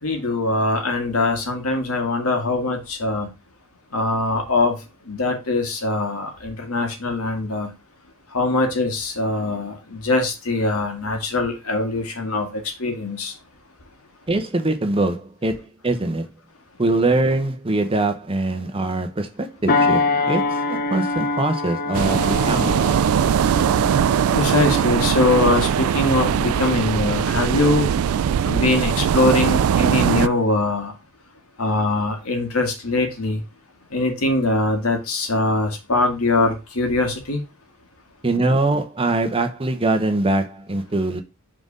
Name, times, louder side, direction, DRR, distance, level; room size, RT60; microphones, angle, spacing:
voice 1, 0.0-3.3 3.9-4.8 5.1-7.7 8.3-13.3 24.3-27.9 28.4-30.9 31.6-33.4 33.9-37.4, left 2 dB, 85° left, 1.9 m, -22 dB
voice 2, 14.3-16.3 16.8-22.8 38.2-41.2, right 2 dB, 25° right, 0.8 m, -23 dB
sound 1, 19.7-28.5 29.0-29.2, left 3 dB, 40° left, 0.8 m, -26 dB
sound 2, 21.9-30.3, right 8 dB, 80° right, 0.3 m, -20 dB
5.9 x 3.8 x 5.3 m
head